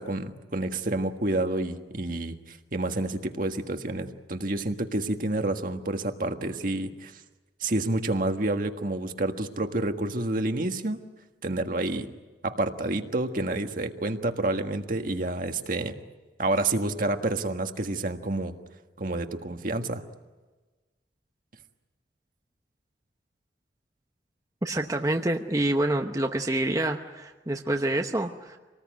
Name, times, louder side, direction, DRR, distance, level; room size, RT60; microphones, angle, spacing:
voice 1, 0.0-7.1 7.6-11.0 11.4-12.1 12.4-16.0 16.4-18.5 19.0-20.0, right 2 dB, 50° right, 6 dB, 1.6 m, -29 dB
voice 2, 24.6-28.6, right 1 dB, 20° right, 3 dB, 0.9 m, -27 dB
26.5 x 19.5 x 9.3 m, 1.3 s
head